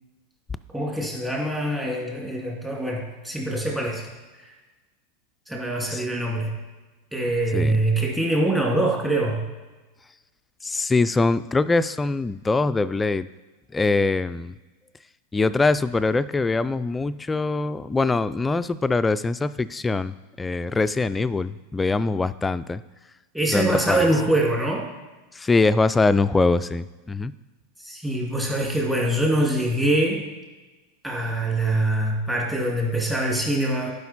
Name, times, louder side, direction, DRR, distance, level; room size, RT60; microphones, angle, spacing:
voice 1, 0.7-4.0 4.4-4.5 5.5-6.6 7.1-9.5 23.3-24.9 27.8-30.2 31.0-33.9, right 1 dB, 10° right, -2 dB, 2.3 m, -24 dB
voice 2, 10.6-13.3 13.7-14.5 15.3-22.8 23.5-24.1 25.3-27.3, left 3 dB, 15° left, 14 dB, 0.3 m, -23 dB
11.5 x 5.0 x 4.2 m, 1.2 s
hypercardioid pair, 105°, 0 cm